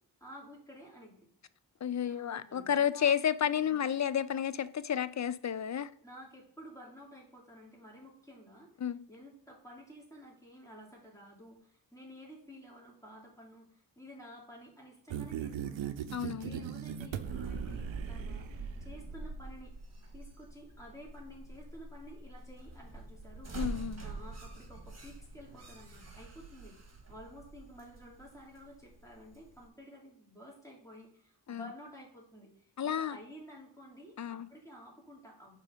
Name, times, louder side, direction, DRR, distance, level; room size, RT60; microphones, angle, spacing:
voice 1, 0.2-1.3 2.0-3.8 6.0-8.7 9.1-16.0 16.4-19.7 20.1-23.6 24.0-35.6, equal, 5° left, 2.6 m, -52 dB
voice 2, 1.8-5.9 8.8-9.0 16.1-16.6 23.5-24.0 31.5-31.7 32.8-33.2 34.2-34.5, left 8 dB, 40° left, 0.4 m, -31 dB
sound 1, 15.1-18.8, right 9 dB, 90° right, 0.6 m, -39 dB
Elevator Ride and Door Open Merchants Bldg, 17.2-29.7, right 2 dB, 35° right, 1.6 m, -45 dB
5.5 x 3.7 x 5.1 m
cardioid pair, 50°, 45 cm